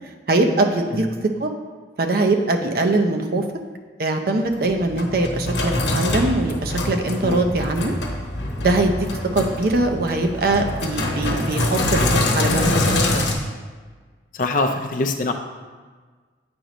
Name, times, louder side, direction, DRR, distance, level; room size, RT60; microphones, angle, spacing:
voice 1, 0.3-1.1 1.4-1.5 2.0-3.4 4.0-7.9 8.6-9.0 9.3-13.3, right 2 dB, 55° right, 4 dB, 0.5 m, -22 dB
Sink (filling or washing), 4.5-13.3, left 2 dB, 75° left, 0.9 m, -24 dB
voice 2, 7.2-7.5 14.3-15.3, left 2 dB, 45° left, 5 dB, 0.5 m, -24 dB
7.8 x 3.0 x 5.0 m, 1.5 s
head